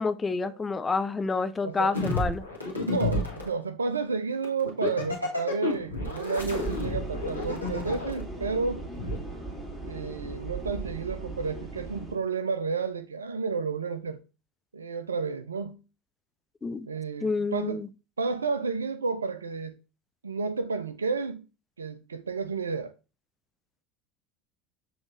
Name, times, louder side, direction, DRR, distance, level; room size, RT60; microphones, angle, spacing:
voice 1, 0.0-2.4 16.6-16.9 17.2-17.9, left 4 dB, 20° left, 0.4 m, -28 dB
voice 2, 1.6-2.0 2.9-8.9 9.8-14.2 14.7-15.8 16.9-17.9 18.2-19.7 20.2-21.4 21.8-22.9, right 4 dB, 80° right, 0.4 m, -31 dB
sound 1, 1.9-3.5 4.4-8.2 9.0-9.2, left 2 dB, 90° left, 1.1 m, -30 dB
sound 2, 6.4-12.2, right 2 dB, 10° right, 2.2 m, -38 dB
7.1 x 3.0 x 2.4 m
figure-of-eight pair, 70°, 0 cm